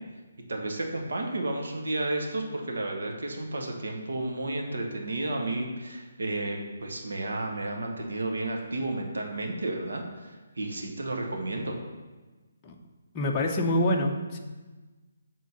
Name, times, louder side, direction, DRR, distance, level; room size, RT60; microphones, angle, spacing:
voice 1, 0.5-11.8, right 2 dB, 80° right, 1 dB, 1.3 m, -32 dB
voice 2, 13.1-14.4, left 1 dB, 15° left, -1 dB, 0.7 m, -26 dB
8.1 x 3.8 x 6.7 m, 1.3 s
hypercardioid pair, 170°, 0 cm